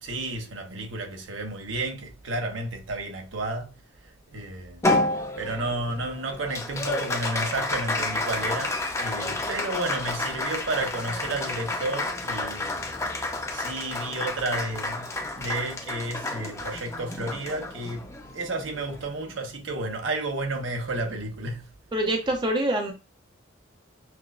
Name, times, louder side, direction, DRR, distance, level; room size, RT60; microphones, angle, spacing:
voice 1, 0.0-3.7 4.3-4.9 5.4-12.9 13.2-15.1 15.3-18.1 18.3-21.6, right 2 dB, 85° right, 0.8 m, -32 dB
Applause, 4.8-19.5, left 2 dB, 15° left, 0.5 m, -30 dB
voice 2, 21.9-22.9, right 1 dB, 25° right, 0.6 m, -25 dB
5.8 x 2.0 x 2.4 m
head